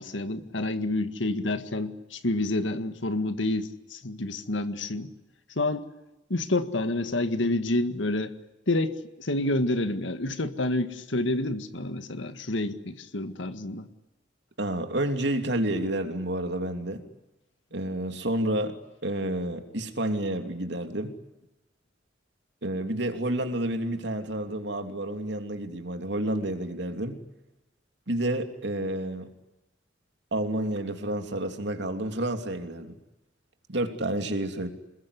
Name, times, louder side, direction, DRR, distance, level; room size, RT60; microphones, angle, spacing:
voice 1, 0.0-5.1 5.5-5.9 6.3-8.3 8.7-13.9, left 2 dB, 80° left, 9 dB, 1.8 m, -28 dB
voice 2, 14.6-17.0 17.7-18.8 19.0-21.1 22.6-27.2 28.1-29.3 30.3-32.9 33.7-34.7, right 1 dB, 65° right, 6 dB, 3.1 m, -29 dB
27.0 x 21.0 x 9.9 m, 0.97 s
head